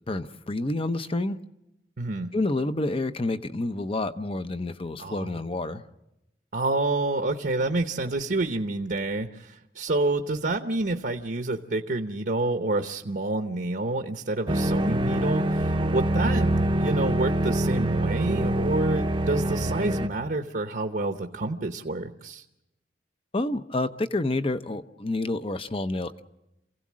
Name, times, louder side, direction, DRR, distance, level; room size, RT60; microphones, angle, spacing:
voice 1, 0.1-1.4 2.3-5.8 23.3-26.2, left 2 dB, 30° left, 11 dB, 0.7 m, -28 dB
voice 2, 2.0-2.3 5.0-5.4 6.5-22.4, right 2 dB, 55° right, 6 dB, 0.9 m, -28 dB
sound 1, 14.5-20.1, right 1 dB, 30° right, 0.8 m, -25 dB
28.0 x 16.5 x 7.5 m, 0.93 s
head